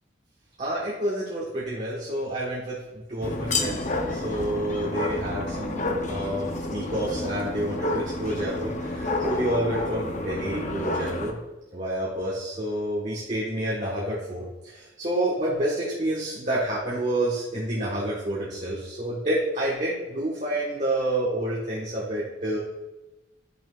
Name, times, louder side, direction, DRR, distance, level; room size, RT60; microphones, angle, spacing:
voice 1, 0.6-11.4 11.7-22.6, right 1 dB, 40° right, -6 dB, 1.3 m, -29 dB
sound 1, 3.2-11.3, left 2 dB, 40° left, 0.7 m, -30 dB
9.7 x 5.9 x 2.4 m, 1.0 s
head